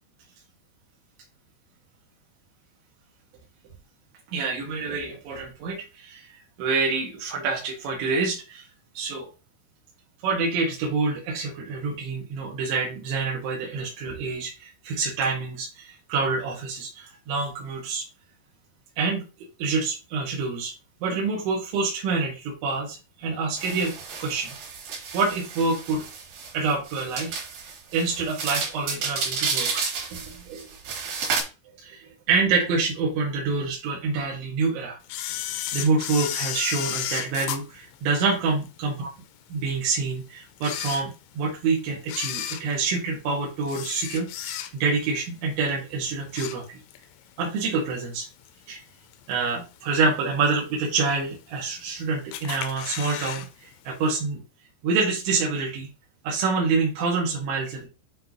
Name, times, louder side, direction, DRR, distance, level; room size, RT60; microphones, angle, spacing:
voice 1, 4.3-6.3 6.6-8.7 9.0-9.3 10.2-18.0 19.0-19.2 19.6-20.7 21.0-24.6 25.1-26.0 26.5-27.4 27.9-29.7 30.1-30.7 31.8-35.4 35.7-39.1 39.5-46.6 47.4-48.3 48.7-48.8 49.3-54.4 54.8-55.9 56.2-57.9, right 4 dB, 85° right, -3 dB, 4.1 m, -27 dB
sound 1, 23.6-31.4, right 5 dB, 65° right, 4.4 m, -31 dB
Camera, 35.1-38.7 39.2-39.3 40.0-40.1 40.5-41.5 42.0-45.0 45.4-45.7 46.0-47.1 47.4-47.5 48.5-48.6 49.1-49.5 50.0-50.1 50.2-50.3 50.5-50.6 51.4-51.9 52.3-53.5 53.7-53.8 54.1-54.2, left 11 dB, 85° left, 3.1 m, -33 dB
10.0 x 4.1 x 3.1 m, 0.30 s
omnidirectional pair, 5.2 m